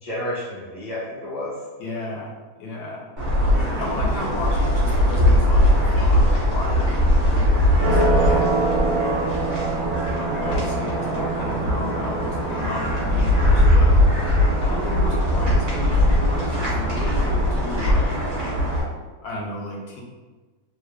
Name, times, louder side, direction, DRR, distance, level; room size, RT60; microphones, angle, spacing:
voice 1, 0.0-1.5 8.3-8.4 10.5-10.6 10.9-11.3, left 1 dB, ahead, -9 dB, 0.8 m, -31 dB
voice 2, 1.8-3.0 3.7-8.7 10.2-13.9 14.6-18.2 19.2-20.0, left 2 dB, 75° left, -2 dB, 1.2 m, -33 dB
sound 1, 3.2-18.8, equal, 30° right, 1.3 m, -20 dB
3.2 x 2.0 x 3.3 m, 1.3 s
omnidirectional pair, 1.8 m